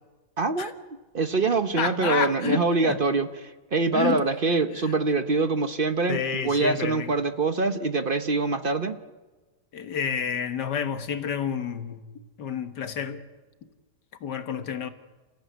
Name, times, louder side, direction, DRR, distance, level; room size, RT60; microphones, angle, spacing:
voice 1, 0.4-0.7 1.1-9.0, right 3 dB, 40° right, 0.9 m, -24 dB
voice 2, 1.8-3.0 3.9-4.2 4.8-4.9 6.1-7.1 9.7-12.0 12.4-13.2 14.2-14.9, left 7 dB, 85° left, 2.0 m, -29 dB
29.5 x 15.5 x 9.3 m
omnidirectional pair, 1.8 m